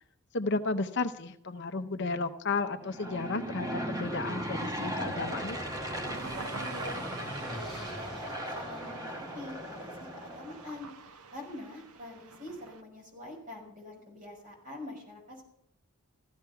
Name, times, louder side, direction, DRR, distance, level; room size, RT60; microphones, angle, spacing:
voice 1, 0.3-5.7, left 3 dB, 50° left, 8 dB, 0.8 m, -33 dB
Aircraft / Engine, 2.8-10.8, equal, 15° right, 1.1 m, -37 dB
sound 1, 3.9-12.8, right 5 dB, 85° right, 0.8 m, -47 dB
sound 2, 4.7-10.5, equal, ahead, 3.3 m, -49 dB
voice 2, 6.1-10.9 11.3-15.4, left 1 dB, 35° right, -1 dB, 5.8 m, -45 dB
15.0 x 12.5 x 5.8 m, 0.77 s
head